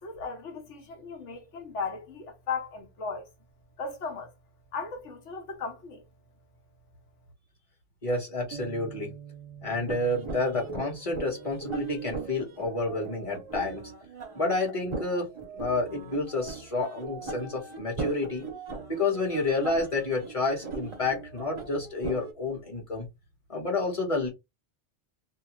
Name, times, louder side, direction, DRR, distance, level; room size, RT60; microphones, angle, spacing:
voice 1, 0.0-3.3 3.8-4.3 4.7-6.0, left 5 dB, 85° left, 1.3 m, -36 dB
voice 2, 8.0-9.1 9.6-13.9 14.3-15.3 15.5-18.4 18.9-23.1 23.5-24.3, left 2 dB, 30° left, 1.2 m, -29 dB
sound 1, 8.5-12.3, right 7 dB, 85° right, 0.9 m, -47 dB
sound 2, 9.9-22.3, right 4 dB, 35° right, 0.5 m, -39 dB
2.8 x 2.2 x 3.0 m
omnidirectional pair, 1.2 m